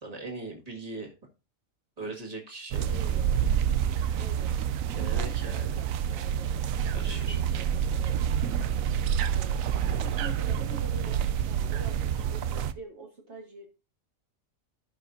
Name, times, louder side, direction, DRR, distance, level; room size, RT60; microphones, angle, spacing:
voice 1, 0.0-1.1 2.0-2.9 5.0-5.8 6.9-7.4, right 3 dB, 30° right, 0 dB, 2.1 m, -39 dB
sound 1, 2.7-12.7, right 9 dB, 85° right, 1.0 m, -28 dB
voice 2, 2.9-3.5 4.2-4.5 4.9-6.5 7.1-9.6 9.9-13.7, right 3 dB, 55° right, 1 dB, 1.8 m, -46 dB
16.0 x 5.6 x 2.7 m, 0.30 s
omnidirectional pair, 1.4 m